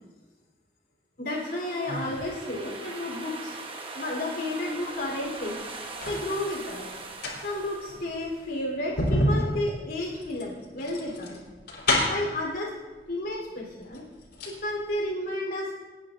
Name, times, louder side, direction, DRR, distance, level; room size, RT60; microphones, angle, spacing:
voice 1, 1.2-3.5 3.9-5.6 6.1-6.9 7.4-11.4 12.1-12.7 13.1-14.0 14.6-15.7, left 1 dB, 60° left, -2 dB, 3.9 m, -32 dB
sound 1, 1.3-8.5, right 3 dB, 30° right, 1.1 m, -41 dB
Sigh, 1.9-2.4, right 3 dB, 80° right, 0.8 m, -38 dB
sound 2, 5.3-6.3 7.0-12.4 13.3-13.4 13.8-14.6 14.9-15.0, left 1 dB, 80° left, 3.9 m, -29 dB
29.0 x 10.0 x 2.6 m, 1.2 s
head